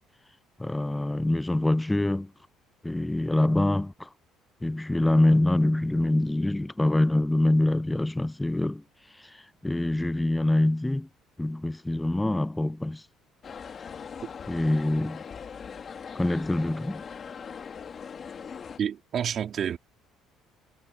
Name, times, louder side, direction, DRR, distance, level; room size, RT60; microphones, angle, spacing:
voice 1, 0.6-2.3 2.8-4.1 4.6-8.8 9.2-11.1 11.4-13.0 14.5-15.2 16.1-17.0, left 1 dB, 10° left, 0.4 m, -25 dB
sound 1, 13.4-18.8, left 6 dB, 40° left, 2.0 m, -41 dB
voice 2, 18.8-19.8, right 8 dB, 50° right, 3.6 m, -29 dB
supercardioid pair, 90°, 0 cm